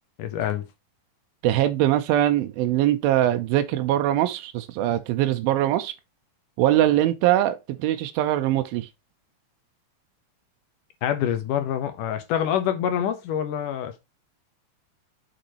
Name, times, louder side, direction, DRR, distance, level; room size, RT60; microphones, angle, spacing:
voice 1, 0.2-0.7 11.0-14.0, left 9 dB, 75° left, 2.2 m, -26 dB
voice 2, 1.4-5.9 6.6-8.9, right 13 dB, 90° right, 2.5 m, -22 dB
6.7 x 6.5 x 2.9 m
omnidirectional pair, 4.1 m